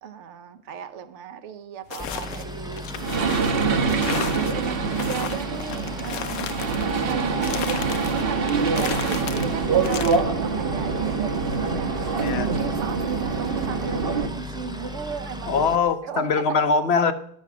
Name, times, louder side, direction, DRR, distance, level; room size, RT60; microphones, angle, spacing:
voice 1, 0.0-2.9 3.2-15.6 16.0-16.6, right 6 dB, 70° right, 1.1 m, -36 dB
sound 1, 1.9-10.2, left 9 dB, 85° left, 1.0 m, -35 dB
Boat Water vehicle, 2.0-15.8, left 1 dB, 5° right, 0.4 m, -36 dB
sound 2, 2.9-14.3, right 5 dB, 50° right, 1.1 m, -25 dB
voice 2, 15.5-17.1, left 5 dB, 60° left, 1.0 m, -22 dB
12.0 x 6.8 x 6.0 m
omnidirectional pair, 1.3 m